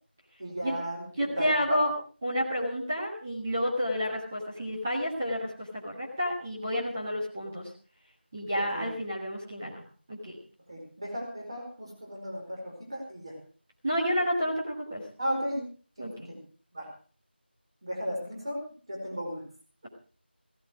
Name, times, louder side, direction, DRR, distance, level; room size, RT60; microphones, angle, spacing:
voice 1, 0.4-1.8 8.5-8.9 10.7-13.4 15.2-15.7 16.0-16.4 16.7-16.9 17.8-18.6 18.9-19.4, equal, 30° right, 0 dB, 4.8 m, -35 dB
voice 2, 1.2-1.9 2.2-7.7 8.3-9.8 10.1-10.4 13.8-15.0 16.0-16.3, equal, 10° right, -5 dB, 1.6 m, -30 dB
16.0 x 13.5 x 4.9 m, 0.40 s
figure-of-eight pair, 175°, 6 cm